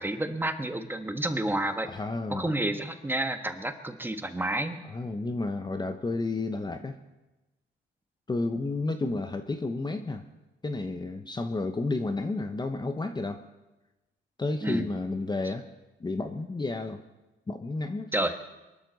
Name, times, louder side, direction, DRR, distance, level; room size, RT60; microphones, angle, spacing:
voice 1, 0.0-1.9 2.3-4.8 14.6-14.9 18.1-18.3, right 1 dB, 10° right, 7 dB, 1.3 m, -30 dB
voice 2, 1.9-2.5 4.9-7.0 8.3-10.3 10.6-13.4 14.4-15.7 16.0-17.0 17.5-18.1, left 3 dB, 20° left, 7 dB, 0.9 m, -31 dB
23.0 x 12.5 x 4.1 m, 1.0 s
cardioid pair, 90°, 20 cm